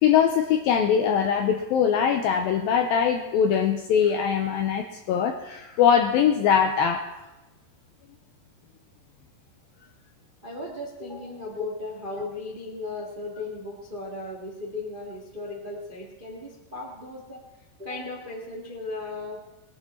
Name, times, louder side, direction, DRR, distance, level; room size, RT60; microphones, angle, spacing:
voice 1, 0.0-7.1, left 8 dB, 85° left, 5 dB, 2.1 m, -22 dB
voice 2, 10.4-17.4 17.8-19.4, left 2 dB, 35° right, -1 dB, 0.7 m, -36 dB
20.0 x 10.5 x 4.4 m, 0.98 s
omnidirectional pair, 4.9 m